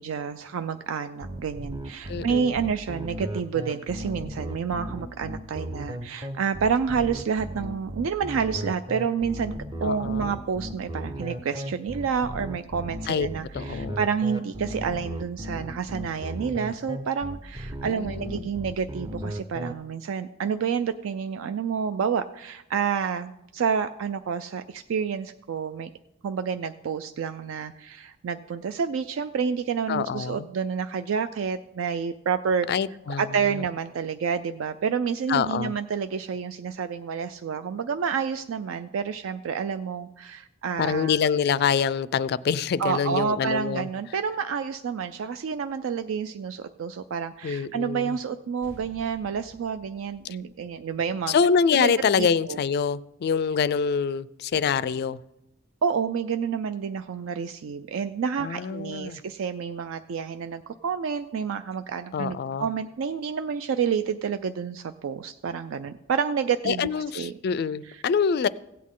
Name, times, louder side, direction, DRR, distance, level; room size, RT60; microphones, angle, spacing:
voice 1, 0.0-9.5 9.8-25.9 26.2-32.7 33.2-41.1 42.8-51.3 51.7-51.9 52.2-52.6 55.8-67.3, right 6 dB, 70° right, 0.4 m, -29 dB
sound 1, 1.2-19.7, equal, 20° right, 0.6 m, -35 dB
voice 2, 2.1-2.6 9.8-10.3 13.1-13.3 13.5-14.0 17.8-18.5 29.9-30.5 32.7-33.6 35.3-35.7 40.8-43.9 47.4-48.2 51.3-55.2 58.4-59.2 62.1-62.7 66.6-68.5, left 6 dB, 50° left, 0.3 m, -25 dB
sound 2, 48.6-53.4, equal, 85° right, 1.9 m, -54 dB
16.0 x 8.5 x 3.7 m
head